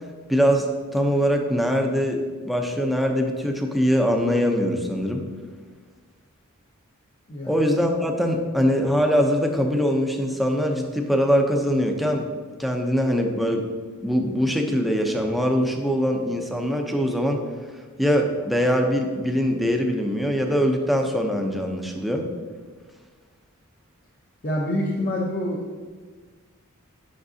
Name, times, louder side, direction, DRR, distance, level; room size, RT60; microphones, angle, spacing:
voice 1, 0.3-0.7 0.9-2.2 2.4-5.2 7.5-12.2 12.6-13.7 14.0-17.4 18.0-22.2, equal, ahead, 2 dB, 0.6 m, -22 dB
voice 2, 24.4-25.6, left 1 dB, 40° left, -4 dB, 0.7 m, -26 dB
8.7 x 5.9 x 2.7 m, 1.5 s
head